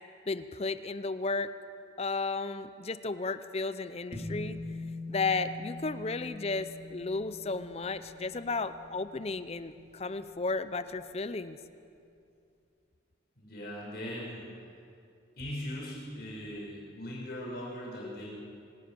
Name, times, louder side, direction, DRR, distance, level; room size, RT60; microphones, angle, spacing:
voice 1, 0.3-1.5 2.0-4.6 5.1-11.6, left 3 dB, 35° left, 13 dB, 0.7 m, -33 dB
sound 1, 4.1-10.7, left 2 dB, 35° right, 4.4 m, -44 dB
voice 2, 13.4-14.5 15.4-18.3, left 1 dB, 55° left, -4 dB, 6.9 m, -39 dB
25.5 x 18.0 x 7.0 m, 2.5 s
head